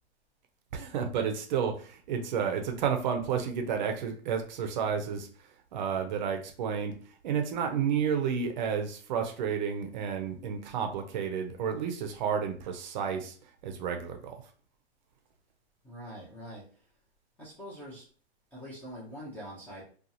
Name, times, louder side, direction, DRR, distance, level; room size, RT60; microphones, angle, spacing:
voice 1, 0.7-5.3 5.7-6.9 7.2-13.3 13.6-14.4, right 7 dB, 45° right, 4 dB, 0.5 m, -31 dB
voice 2, 15.8-16.6 17.4-18.0 18.5-19.8, equal, 5° left, -6 dB, 0.5 m, -44 dB
2.7 x 2.3 x 2.6 m, 0.42 s
hypercardioid pair, 135°, 34 cm